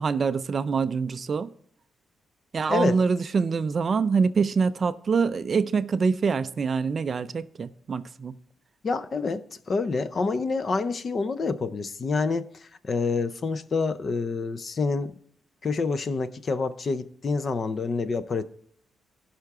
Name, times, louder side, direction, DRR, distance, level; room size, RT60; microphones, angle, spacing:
voice 1, 0.0-1.5 2.5-8.4, right 5 dB, 30° right, 0.3 m, -25 dB
voice 2, 8.8-15.1 15.6-18.4, left 4 dB, 30° left, 0.5 m, -27 dB
16.0 x 5.8 x 3.6 m
cardioid pair, 170°, 0 cm